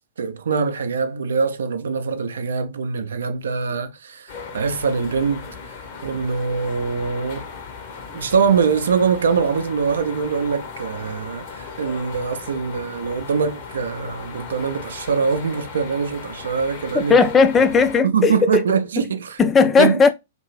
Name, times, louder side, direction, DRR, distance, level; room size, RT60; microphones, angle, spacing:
voice 1, 0.2-5.6 6.0-7.4 8.1-17.1 18.0-19.4 19.8-20.0, right 5 dB, 70° right, 0.5 m, -23 dB
sound 1, 4.3-18.0, left 5 dB, 50° left, 0.8 m, -37 dB
voice 2, 16.9-18.5 19.0-19.1 19.4-20.1, left 5 dB, 20° left, 0.4 m, -16 dB
2.6 x 2.6 x 3.0 m
figure-of-eight pair, 105°, 0 cm